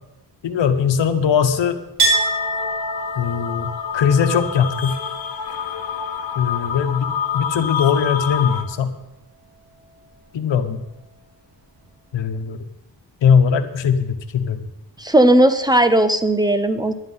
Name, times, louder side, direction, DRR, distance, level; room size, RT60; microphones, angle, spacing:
voice 1, 0.4-1.8 3.2-3.7 3.9-5.0 6.4-8.9 10.3-10.8 12.1-12.6 13.2-14.7, left 7 dB, 85° left, 8 dB, 1.1 m, -20 dB
Chink clink, 2.0-7.5 7.8-8.7, right 2 dB, 55° right, 5.1 m, -27 dB
sound 1, 2.1-8.6, left 7 dB, 55° left, 1.2 m, -28 dB
voice 2, 15.0-16.9, right 1 dB, 10° right, 10 dB, 0.6 m, -16 dB
11.0 x 9.6 x 5.6 m, 0.90 s
wide cardioid pair, 170°, 43 cm